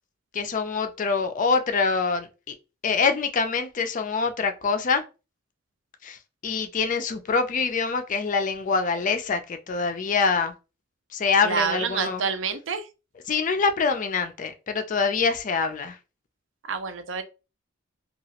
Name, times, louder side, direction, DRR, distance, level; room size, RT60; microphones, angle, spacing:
voice 1, 0.3-2.5 2.8-5.0 6.0-6.2 6.4-10.5 11.1-12.2 13.3-16.0, left 5 dB, 40° left, 0.4 m, -25 dB
voice 2, 11.4-12.9 16.7-17.2, right 6 dB, 70° right, 0.5 m, -27 dB
2.9 x 2.4 x 2.8 m
head